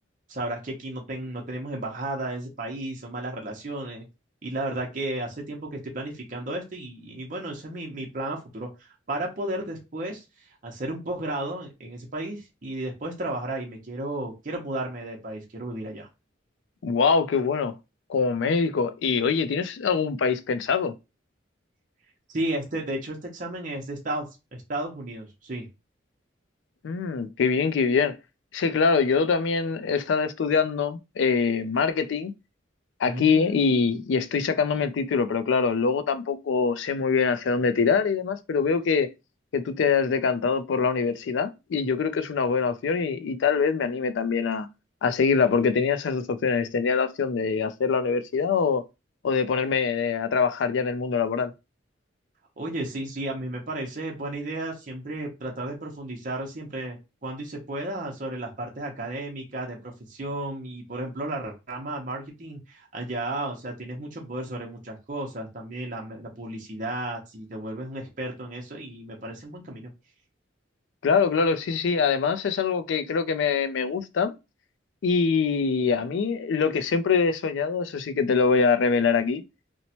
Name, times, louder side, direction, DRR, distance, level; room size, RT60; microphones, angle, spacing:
voice 1, 0.3-4.1 4.4-10.2 10.6-16.1 22.3-25.7 33.0-33.7 52.6-69.9, right 1 dB, 40° right, 0.7 m, -33 dB
voice 2, 16.8-17.7 18.1-20.9 26.8-28.1 28.5-32.3 33.0-39.1 39.5-44.7 45.0-48.8 49.2-51.5 71.0-74.3 75.0-79.4, left 5 dB, 70° left, 0.4 m, -24 dB
2.9 x 2.1 x 2.8 m
head